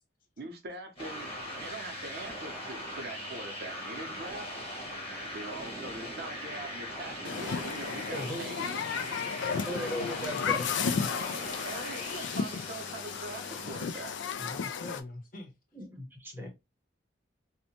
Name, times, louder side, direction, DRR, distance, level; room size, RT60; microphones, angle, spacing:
voice 1, 0.4-4.7 5.3-8.8 11.6-14.1, right 2 dB, 55° right, 0.6 m, -43 dB
sound 1, 1.0-14.7, equal, 30° left, 1.1 m, -41 dB
Human group actions, 7.2-15.0, left 6 dB, 75° left, 0.3 m, -34 dB
voice 2, 8.1-8.4 9.7-10.9 15.7-16.5, equal, 10° right, 0.7 m, -38 dB
voice 3, 14.4-15.5 16.3-16.5, left 2 dB, 45° left, 0.7 m, -43 dB
2.7 x 2.1 x 2.7 m
head